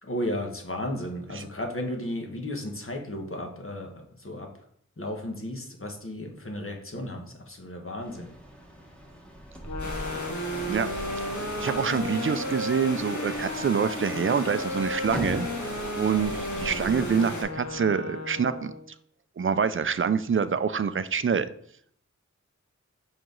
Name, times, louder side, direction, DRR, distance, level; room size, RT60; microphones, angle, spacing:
voice 1, 0.0-4.5 5.0-8.3, left 1 dB, 45° left, 2 dB, 1.2 m, -34 dB
sound 1, 8.0-17.8, equal, 5° left, 1.3 m, -42 dB
sound 2, 9.6-18.9, left 1 dB, 70° left, 0.9 m, -34 dB
sound 3, 9.8-17.4, left 1 dB, 90° left, 1.6 m, -37 dB
voice 2, 11.6-18.7 19.4-21.5, right 6 dB, 45° right, 13 dB, 0.4 m, -26 dB
5.2 x 4.7 x 3.8 m, 0.65 s
wide cardioid pair, 50°, 29 cm